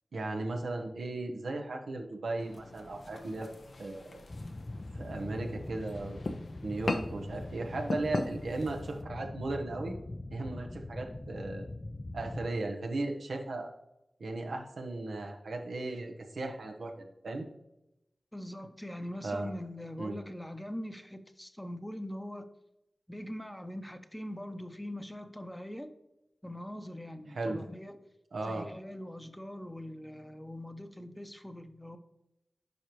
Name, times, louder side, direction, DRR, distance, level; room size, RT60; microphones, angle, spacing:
voice 1, 0.1-3.5 3.8-4.2 4.9-6.2 6.6-10.0 10.3-11.6 12.1-13.7 14.2-17.5 19.2-19.5 20.0-20.2 27.3-27.6 28.3-28.7, right 2 dB, 90° right, 3 dB, 0.9 m, -36 dB
sound 1, 2.4-9.0, left 2 dB, 75° left, 0.7 m, -40 dB
sound 2, 4.3-12.5, left 2 dB, 40° left, 0.4 m, -42 dB
voice 2, 18.3-22.5 23.1-25.9 26.4-28.0 28.5-32.0, left 1 dB, 10° left, 8 dB, 0.8 m, -42 dB
9.3 x 5.3 x 3.1 m, 0.89 s
cardioid pair, 40°, 0 cm